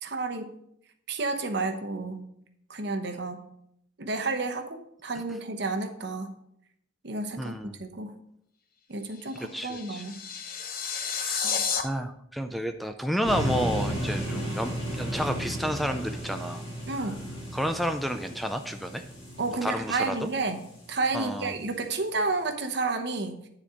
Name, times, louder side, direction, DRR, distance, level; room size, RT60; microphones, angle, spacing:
voice 1, 0.0-0.5 1.1-2.2 2.7-3.5 4.0-6.3 7.0-8.1 8.9-10.2 11.4-11.6 16.9-17.3 19.4-23.5, right 3 dB, 60° right, 6 dB, 0.9 m, -31 dB
voice 2, 7.4-7.8 9.5-10.0 11.2-11.5 11.8-16.6 17.5-19.0 19.5-20.3 21.1-21.5, equal, ahead, 7 dB, 0.4 m, -31 dB
sound 1, 9.1-11.8, left 6 dB, 50° left, 0.9 m, -31 dB
sound 2, 13.2-21.3, right 1 dB, 30° left, 3.4 m, -34 dB
9.9 x 4.3 x 5.0 m, 0.73 s
head